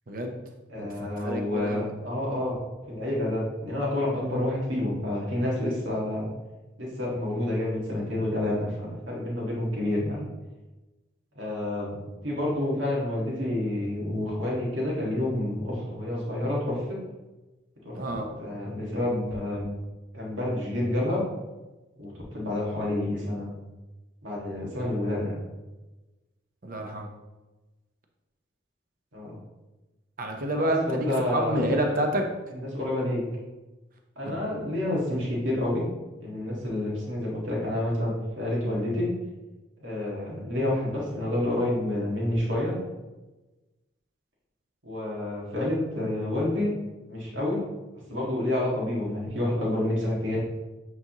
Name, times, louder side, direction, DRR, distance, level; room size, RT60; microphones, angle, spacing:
voice 1, 0.7-2.6 2.9-6.3 6.8-10.2 11.4-17.0 17.8-18.0 18.4-19.7 20.1-21.2 22.0-23.5 24.2-25.3 29.1-29.3 30.5-32.1 32.5-33.2 34.2-35.8 36.2-39.1 39.8-42.7 44.8-46.7 47.1-47.6 48.1-50.4, left 1 dB, 85° right, -4 dB, 1.8 m, -29 dB
voice 2, 1.2-1.9 17.9-18.3 26.6-27.1 30.2-32.2 34.3-34.4, right 1 dB, 45° right, 3 dB, 0.8 m, -28 dB
8.4 x 4.0 x 2.9 m, 1.1 s
head